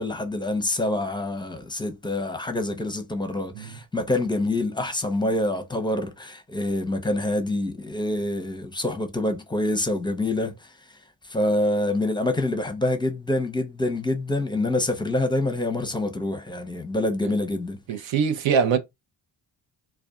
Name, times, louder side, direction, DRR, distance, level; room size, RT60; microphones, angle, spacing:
voice 1, 0.0-10.6 11.3-17.8, left 1 dB, 10° left, 0.6 m, -26 dB
voice 2, 17.9-18.8, right 6 dB, 75° right, 0.6 m, -23 dB
2.5 x 2.2 x 2.3 m
supercardioid pair, 50°, 45 cm